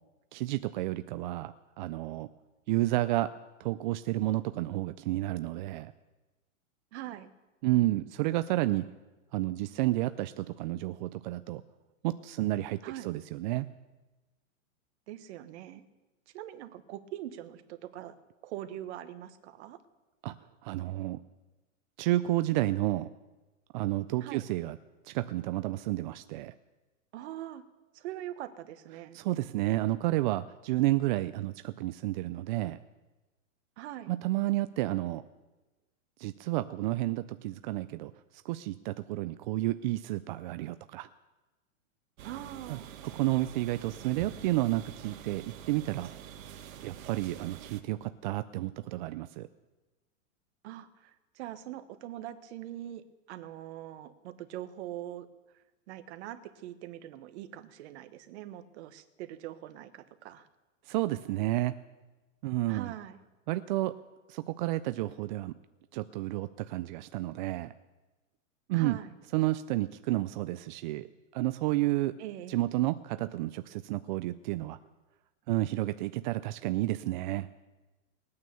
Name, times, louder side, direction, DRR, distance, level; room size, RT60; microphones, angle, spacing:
voice 1, 0.3-2.3 2.7-3.3 3.6-5.9 7.6-8.9 9.3-11.6 12.0-13.7 20.2-20.3 20.6-21.2 22.0-23.1 23.7-24.8 25.1-26.5 29.1-32.8 34.1-35.2 36.2-38.1 38.4-41.1 42.7-42.8 43.1-46.1 46.8-49.5 60.9-61.7 62.4-62.9 63.5-63.9 64.3-65.5 65.9-67.7 68.7-69.0 69.3-71.1 71.3-72.2 72.5-74.8 75.5-77.5, right 17 dB, 40° right, 12 dB, 0.4 m, -31 dB
voice 2, 6.9-7.3 12.8-13.1 15.1-15.8 16.3-18.1 18.4-19.8 24.2-24.5 27.1-27.6 27.9-29.2 33.8-34.1 42.2-43.0 50.6-55.3 55.5-60.5 62.7-63.2 68.7-69.1 72.2-72.6, right 13 dB, 55° right, 11 dB, 1.3 m, -43 dB
sound 1, 42.2-47.8, right 9 dB, 75° right, 1.5 m, -46 dB
19.5 x 9.6 x 6.9 m, 1.1 s
hypercardioid pair, 135°, 41 cm